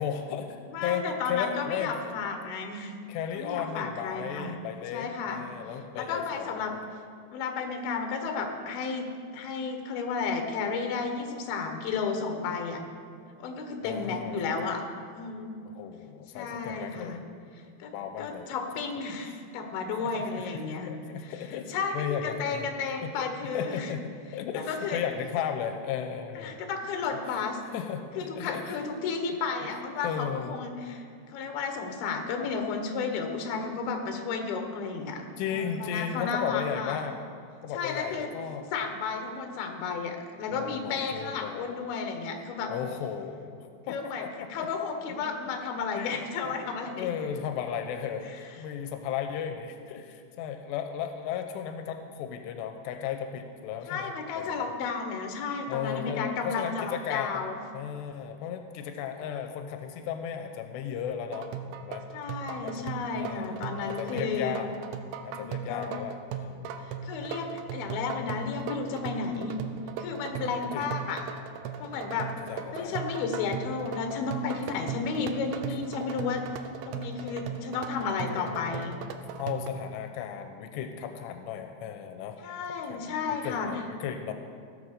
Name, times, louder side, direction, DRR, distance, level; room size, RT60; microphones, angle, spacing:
voice 1, 0.0-2.1 3.1-6.8 13.8-14.5 15.7-17.2 17.9-18.5 20.0-22.7 23.0-24.0 24.3-26.6 27.3-28.8 30.0-30.5 35.4-37.2 37.6-38.7 40.5-41.7 42.7-44.7 45.1-45.6 45.9-48.3 48.6-54.7 55.7-61.5 61.8-62.1 62.6-64.7 65.2-66.8 70.4-70.9 71.8-72.0 72.5-73.0 74.7-75.0 78.3-78.8 79.4-82.4 82.9-84.3, left 8 dB, 90° left, 6 dB, 2.9 m, -35 dB
voice 2, 0.7-2.9 3.3-4.6 4.9-5.4 6.0-6.7 7.3-12.8 13.4-14.8 15.1-15.5 16.3-17.2 17.8-17.9 18.2-20.9 21.2-21.3 21.7-21.9 22.2-23.9 24.5-25.0 26.4-27.6 28.2-31.0 31.3-37.0 37.7-38.3 38.7-42.7 43.9-44.2 44.5-47.1 53.9-57.6 62.1-64.6 65.3-65.9 66.8-69.5 70.0-71.3 71.8-72.3 72.7-76.4 76.9-79.0 82.4-83.7, left 5 dB, 70° left, 5 dB, 2.9 m, -33 dB
sound 1, 61.3-79.7, right 6 dB, 80° right, 2.6 m, -38 dB
16.5 x 6.8 x 6.6 m, 2.3 s
omnidirectional pair, 4.8 m